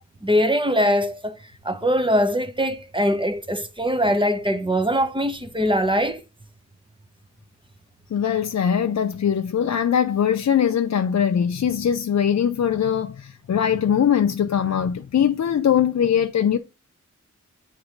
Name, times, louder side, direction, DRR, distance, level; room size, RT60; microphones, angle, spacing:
voice 1, 0.2-1.4 1.6-6.2, equal, 15° right, 0.9 m, -22 dB
voice 2, 8.1-16.6, left 8 dB, 60° left, 0.5 m, -21 dB
8.2 x 3.0 x 5.1 m
wide cardioid pair, 55°, 31 cm